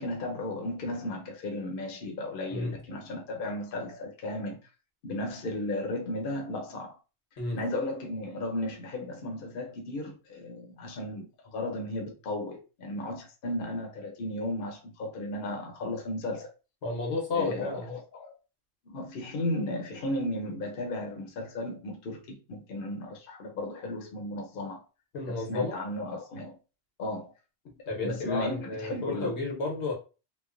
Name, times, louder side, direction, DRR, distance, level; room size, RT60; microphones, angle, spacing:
voice 1, 0.0-4.6 5.0-7.0 7.5-16.5 17.3-18.3 18.9-24.8 25.3-26.6 27.0-27.3 28.0-29.4, left 1 dB, 60° left, 0.8 m, -35 dB
voice 2, 16.8-17.9 25.1-25.8 27.9-29.9, left 3 dB, 90° left, 1.2 m, -32 dB
3.1 x 2.1 x 2.4 m
omnidirectional pair, 1.1 m